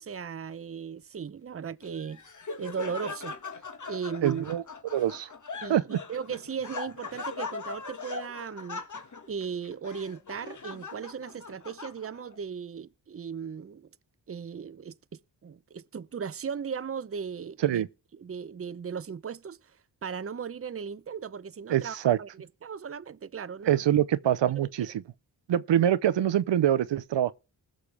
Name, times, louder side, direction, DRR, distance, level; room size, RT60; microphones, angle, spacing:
voice 1, 0.0-2.2 2.6-3.3 3.9-4.4 5.6-8.8 9.3-13.9 14.3-17.8 18.2-19.8 20.0-22.3 22.6-23.8, right 6 dB, 35° right, 0.7 m, -37 dB
Laughter, 1.8-12.3, left 4 dB, 45° left, 1.7 m, -40 dB
voice 2, 4.2-4.6 4.9-5.3 5.7-6.0 17.6-17.9 21.7-22.2 23.7-24.9 25.5-27.3, right 11 dB, 80° right, 0.7 m, -24 dB
20.0 x 6.8 x 3.4 m
cardioid pair, 60°, 42 cm